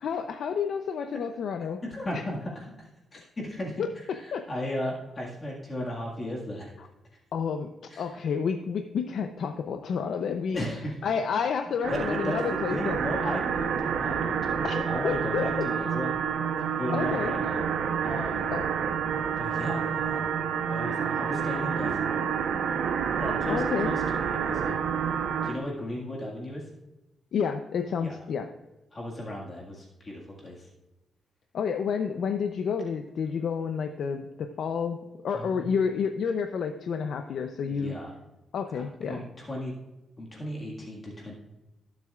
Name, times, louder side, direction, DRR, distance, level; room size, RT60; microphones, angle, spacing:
voice 1, 0.0-1.8 3.8-4.5 7.3-7.7 8.0-10.6 11.0-13.0 14.6-15.4 16.9-17.3 18.5-18.6 23.5-23.9 27.3-28.5 31.5-35.0 35.2-38.0 38.5-39.2, left 6 dB, 65° left, 6 dB, 0.6 m, -30 dB
voice 2, 1.9-6.7 7.9-8.0 10.0-10.1 10.5-11.0 11.9-16.1 16.6-17.7 18.0-18.5 19.4-20.2 20.7-22.3 23.2-24.9 25.4-26.6 28.0-28.1 28.9-30.7 35.3-35.7 37.6-38.2 38.7-39.7 40.2-41.3, left 1 dB, 25° left, -3 dB, 1.8 m, -35 dB
sound 1, 11.8-25.6, right 7 dB, 80° right, 0.9 m, -28 dB
19.0 x 7.6 x 2.4 m, 1.0 s
wide cardioid pair, 155°, 0 cm